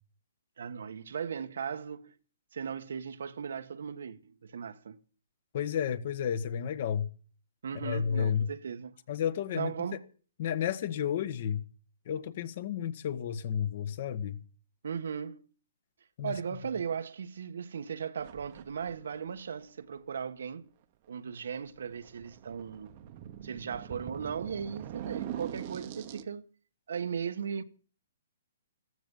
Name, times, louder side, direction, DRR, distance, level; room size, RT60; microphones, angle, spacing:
voice 1, 0.6-2.1 2.5-5.0 7.6-9.0 9.5-10.0 14.8-15.4 16.2-20.7 21.1-22.9 23.4-26.5 26.9-27.6, right 7 dB, 70° right, 1.4 m, -37 dB
voice 2, 5.5-7.1 7.7-8.5 9.1-9.7 10.4-11.6 12.1-14.4 16.2-16.3, left 8 dB, 40° left, 1.6 m, -31 dB
sound 1, 18.2-19.4 21.1-26.2, right 11 dB, 30° right, 1.1 m, -43 dB
15.0 x 15.0 x 5.5 m
hypercardioid pair, 170°, 0 cm